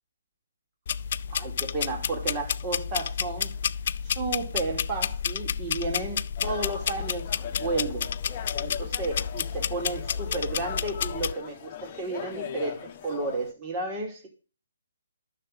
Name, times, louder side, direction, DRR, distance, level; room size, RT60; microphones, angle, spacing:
sound 1, 0.9-11.3, left 7 dB, 50° left, 0.5 m, -31 dB
voice 1, 1.3-3.5 4.1-7.3 7.6-8.1 8.6-14.3, right 3 dB, 25° right, 3.1 m, -32 dB
sound 2, 6.4-13.5, left 9 dB, 30° left, 1.3 m, -40 dB
12.0 x 6.7 x 7.7 m
hypercardioid pair, 150°, 0 cm